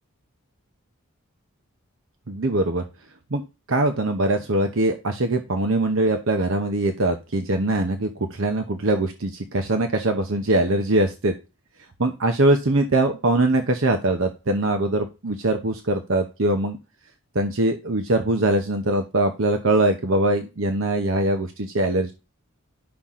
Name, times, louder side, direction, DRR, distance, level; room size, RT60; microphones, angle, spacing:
voice 1, 2.3-2.8 3.3-3.4 3.7-11.3 12.0-16.8 17.3-22.1, right 2 dB, 65° right, 6 dB, 0.9 m, -22 dB
10.5 x 5.8 x 3.7 m, 0.29 s
head